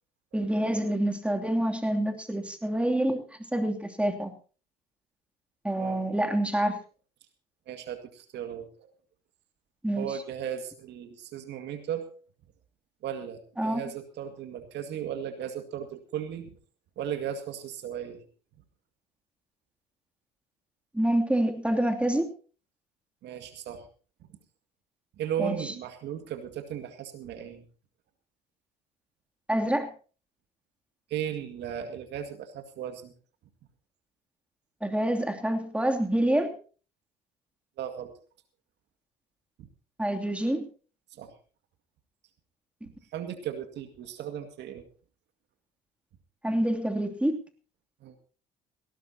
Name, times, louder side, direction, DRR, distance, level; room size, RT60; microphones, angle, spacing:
voice 1, 0.3-3.2 3.5-4.3 5.6-6.8 9.8-10.1 13.6-13.8 20.9-22.3 25.4-25.5 29.5-29.9 34.8-36.5 40.0-40.7 46.4-47.4, right 1 dB, 5° right, 4 dB, 2.8 m, -27 dB
voice 2, 7.7-8.9 9.9-12.1 13.0-16.6 17.0-18.2 23.2-23.9 24.2-24.3 25.2-27.6 31.1-33.1 37.8-38.1 39.6-39.7 41.1-41.3 43.1-44.8 48.0-48.2, right 9 dB, 60° right, 7 dB, 2.1 m, -36 dB
18.5 x 17.5 x 2.9 m, 0.39 s
hypercardioid pair, 60°, 20 cm